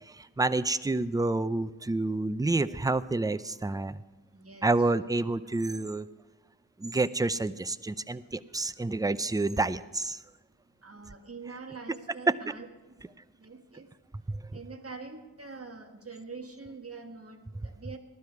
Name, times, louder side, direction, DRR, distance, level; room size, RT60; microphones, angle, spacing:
voice 1, 0.2-4.0 4.6-6.1 6.8-10.2 14.3-14.4, right 2 dB, 10° right, 15 dB, 0.4 m, -29 dB
voice 2, 4.3-4.7 5.4-5.5 10.8-13.1 13.4-13.9 14.5-18.0, right 4 dB, 45° right, 4 dB, 1.6 m, -45 dB
16.5 x 12.0 x 4.7 m, 1.2 s
cardioid pair, 50°, 34 cm